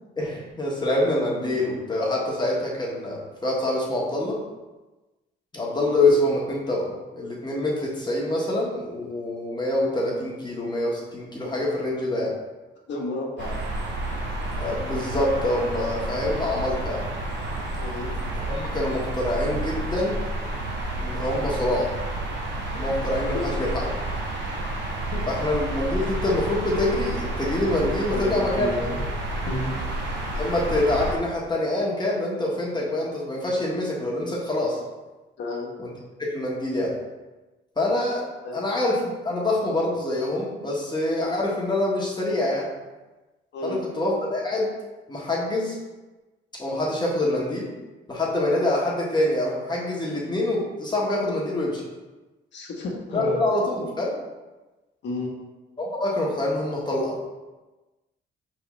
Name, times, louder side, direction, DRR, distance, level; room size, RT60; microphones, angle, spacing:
voice 1, 0.2-4.4 5.5-12.3 14.6-17.0 18.2-20.2 21.0-21.9 22.7-23.9 25.3-28.7 30.3-34.8 35.8-35.9 36.3-36.9 37.8-38.2 38.5-42.7 43.6-44.7 45.1-45.8 46.6-47.7 48.1-51.8 53.1-54.1 55.8-57.2, left 1 dB, 20° left, -4 dB, 1.2 m, -25 dB
voice 2, 12.9-13.6 17.8-18.1 23.3-23.5 25.1-25.2 28.1-29.0 29.5-29.8 35.4-35.7 38.4-38.6 43.5-43.8 52.5-53.4 55.0-55.3, left 2 dB, 65° left, -1 dB, 1.1 m, -31 dB
sound 1, 13.4-31.2, right 1 dB, 65° right, 0.8 m, -30 dB
4.8 x 3.6 x 3.1 m, 1.2 s
cardioid pair, 90°, 20 cm